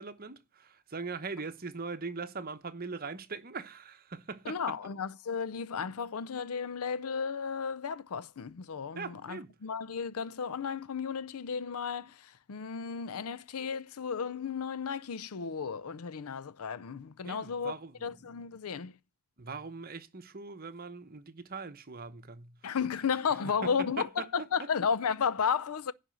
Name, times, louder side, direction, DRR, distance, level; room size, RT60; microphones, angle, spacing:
voice 1, 0.0-4.6 8.9-9.5 17.2-18.1 19.4-22.8 23.6-24.5, right 4 dB, 40° right, 1.0 m, -41 dB
voice 2, 4.5-17.7 18.0-18.9 22.6-25.9, left 6 dB, 80° left, 0.5 m, -33 dB
11.0 x 4.2 x 7.7 m
head